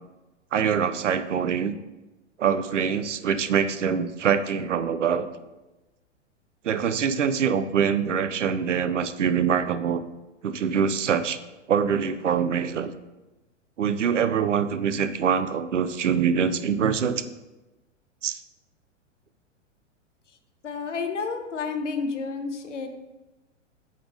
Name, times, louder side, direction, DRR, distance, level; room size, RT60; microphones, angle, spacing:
voice 1, 0.5-1.7 2.4-5.3 6.6-10.0 10.4-11.4 11.7-12.9 13.8-17.2 18.2-18.4, right 7 dB, 70° right, 12 dB, 0.6 m, -24 dB
voice 2, 20.6-22.9, left 4 dB, 70° left, 6 dB, 1.0 m, -30 dB
8.5 x 4.1 x 5.0 m, 1.1 s
figure-of-eight pair, 105°, 37 cm